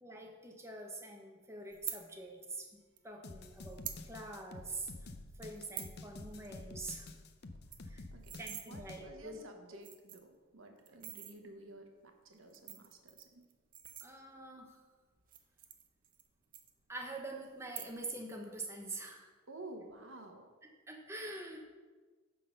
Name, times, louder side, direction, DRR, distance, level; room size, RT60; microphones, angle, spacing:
voice 1, 0.0-5.1 5.4-7.1 7.9-8.0 8.4-9.4 9.7-9.8 14.0-14.8 16.9-19.3 20.9-21.7, right 2 dB, 15° right, 2 dB, 0.8 m, -45 dB
sound 1, 1.7-2.0 3.0-3.1 3.6-4.0 4.4-4.5 4.7-5.0 5.4-6.0 6.3-6.5 6.8-6.9 7.2-7.3 7.5-8.7 9.3-9.4 9.8-10.4 10.9-11.3 12.3-14.5 15.2-16.3 16.5-17.2 17.6-18.2 18.5-18.9, right 11 dB, 40° right, 0.7 m, -46 dB
sound 2, 3.2-9.1, left 2 dB, 50° left, 0.6 m, -49 dB
voice 2, 8.7-13.4 19.5-20.5, right 2 dB, 75° right, 4 dB, 1.1 m, -52 dB
9.9 x 3.9 x 6.5 m, 1.4 s
head